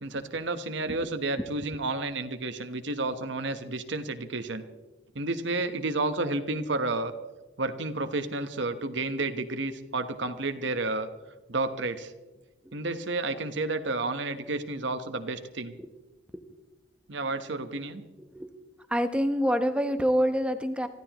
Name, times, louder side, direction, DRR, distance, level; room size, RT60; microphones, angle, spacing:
voice 1, 0.0-4.6 5.1-7.1 7.6-11.1 11.5-12.1 12.7-15.7 17.1-18.0, right 2 dB, 60° right, 9 dB, 1.1 m, -31 dB
voice 2, 18.2-18.5 18.9-20.9, equal, 5° right, 8 dB, 0.8 m, -27 dB
25.0 x 15.0 x 3.0 m, 1.2 s
head